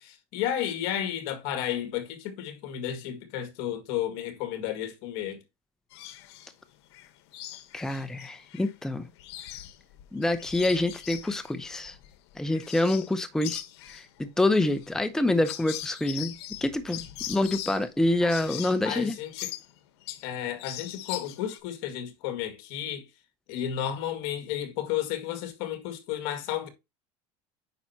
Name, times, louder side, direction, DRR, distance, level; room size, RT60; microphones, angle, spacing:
voice 1, 0.0-5.4 18.2-18.3 18.8-19.5 20.2-23.1 23.5-26.7, left 10 dB, 65° left, 2.0 m, -32 dB
sound 1, 5.9-6.5 6.9-8.7 9.0-13.1 13.4-20.3 20.6-21.6, left 14 dB, 85° left, 1.1 m, -41 dB
voice 2, 7.7-9.1 10.1-12.0 12.4-13.6 13.9-14.1 14.4-16.3 16.6-19.2, left 2 dB, 5° left, 0.7 m, -26 dB
9.1 x 5.7 x 2.8 m
supercardioid pair, 140°, 13 cm